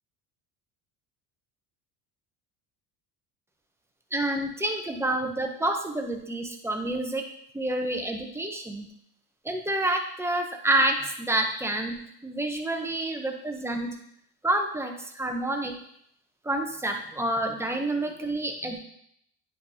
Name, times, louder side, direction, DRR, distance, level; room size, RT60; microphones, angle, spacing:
voice 1, 4.1-7.2 7.5-8.9 9.4-13.9 14.4-15.7 16.4-18.8, right 1 dB, 5° right, 3 dB, 0.6 m, -28 dB
9.7 x 5.0 x 2.7 m, 0.70 s
cardioid pair, 150°, 43 cm